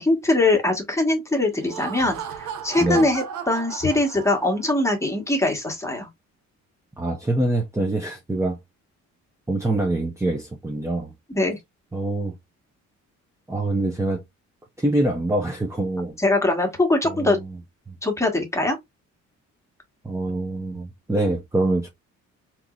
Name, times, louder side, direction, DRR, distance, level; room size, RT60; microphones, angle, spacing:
voice 1, 0.0-6.1 11.3-11.6 16.2-17.4 18.0-18.8, left 2 dB, 10° left, 1.3 m, -22 dB
Laughter, 1.5-4.8, right 7 dB, 75° right, 0.8 m, -35 dB
voice 2, 7.0-8.6 9.5-11.1 11.9-12.3 13.5-14.2 14.8-16.2 17.0-17.5 17.9-18.0 20.0-21.9, right 2 dB, 10° right, 0.7 m, -25 dB
3.6 x 3.0 x 2.4 m
cardioid pair, 90°, 30 cm